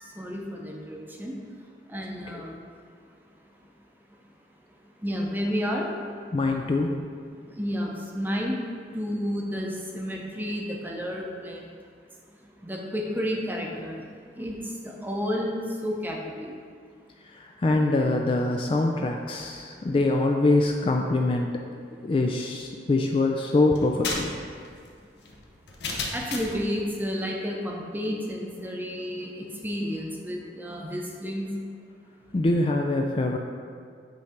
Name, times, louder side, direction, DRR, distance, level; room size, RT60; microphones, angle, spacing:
voice 1, 0.2-1.3 1.9-2.5 5.0-5.9 7.6-8.6 8.9-11.6 12.6-14.0 14.4-16.5 26.1-31.5, equal, 10° right, -1 dB, 0.7 m, -31 dB
voice 2, 6.3-7.0 17.2-21.6 22.0-24.3 32.3-33.4, left 2 dB, 30° left, 2 dB, 0.3 m, -24 dB
sound 1, 23.7-26.7, left 3 dB, 70° left, 0.8 m, -33 dB
8.2 x 3.3 x 5.1 m, 2.2 s
head